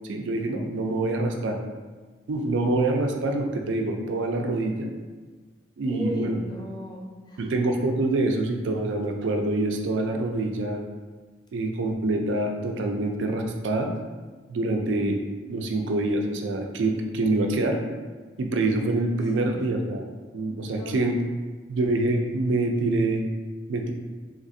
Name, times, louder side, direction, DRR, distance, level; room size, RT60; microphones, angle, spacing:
voice 1, 0.1-1.6 2.3-4.9 5.8-6.3 7.4-10.8 11.5-13.9 14.5-15.2 15.5-17.8 18.4-21.2 21.7-23.2 23.7-23.9, right 2 dB, 65° right, 3 dB, 0.4 m, -25 dB
voice 2, 5.9-7.5 19.4-19.6 20.6-21.0, equal, 20° left, -1 dB, 0.3 m, -37 dB
3.4 x 2.4 x 2.6 m, 1.3 s
head